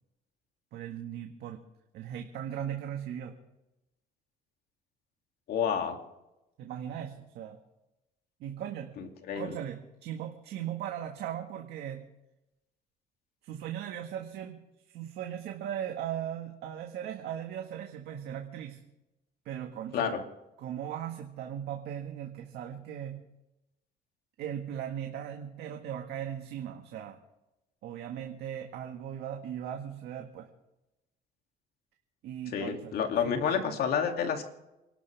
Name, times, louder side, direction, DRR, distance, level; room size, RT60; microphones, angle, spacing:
voice 1, 0.7-1.6 1.9-3.4 6.6-7.6 8.4-8.9 9.4-12.0 13.4-14.6 14.9-18.8 19.5-20.2 20.6-23.2 24.4-27.2 27.8-30.5 32.2-33.8, right 10 dB, 75° right, 3 dB, 1.8 m, -38 dB
voice 2, 5.5-6.0 9.0-9.5 19.9-20.2 32.5-34.4, left 7 dB, 65° left, 4 dB, 2.7 m, -29 dB
28.5 x 12.5 x 3.5 m, 0.94 s
cardioid pair, 110°, 17 cm